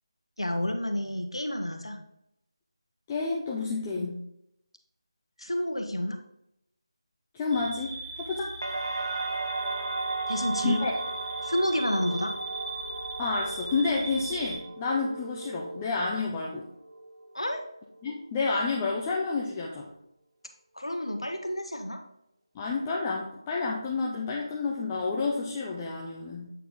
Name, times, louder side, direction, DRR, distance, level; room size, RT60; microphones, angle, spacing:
voice 1, 0.4-2.0 3.9-4.1 5.4-6.2 10.3-10.8 11.4-12.3 17.3-17.6 20.7-22.0, left 1 dB, 85° left, 4 dB, 1.2 m, -29 dB
voice 2, 3.1-4.2 7.3-8.5 10.6-10.9 13.2-16.7 18.0-19.9 22.5-26.5, left 4 dB, 15° left, -3 dB, 0.5 m, -30 dB
sound 1, 7.5-14.6, right 3 dB, 80° right, 2.6 m, -39 dB
sound 2, 8.6-16.5 16.9-17.6, right 3 dB, 55° right, 0.7 m, -36 dB
8.1 x 4.6 x 3.7 m, 0.81 s
figure-of-eight pair, 165°, 3 cm